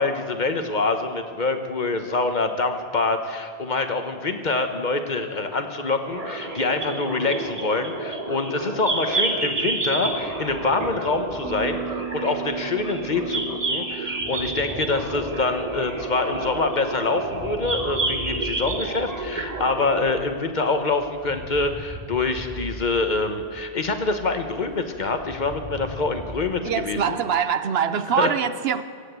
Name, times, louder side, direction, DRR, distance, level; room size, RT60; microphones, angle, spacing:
voice 1, 0.0-27.2 28.2-28.4, left 3 dB, 50° left, 7 dB, 1.2 m, -25 dB
sound 1, 6.0-20.2, right 2 dB, 40° right, 1.4 m, -30 dB
sound 2, 9.4-26.8, equal, 10° left, 4.5 m, -41 dB
sound 3, 11.4-17.7, right 14 dB, 15° right, 0.5 m, -39 dB
voice 2, 26.6-28.8, right 8 dB, 75° right, 13 dB, 0.9 m, -23 dB
16.5 x 8.2 x 8.2 m, 2.1 s
omnidirectional pair, 1.0 m